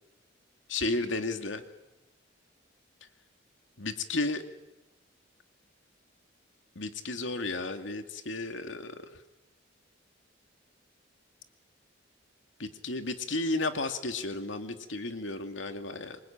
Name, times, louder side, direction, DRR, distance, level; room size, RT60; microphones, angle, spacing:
voice 1, 0.7-1.6 3.8-4.4 6.8-9.2 12.6-16.2, left 2 dB, 80° left, 7 dB, 2.4 m, -33 dB
27.0 x 24.0 x 8.8 m, 0.97 s
head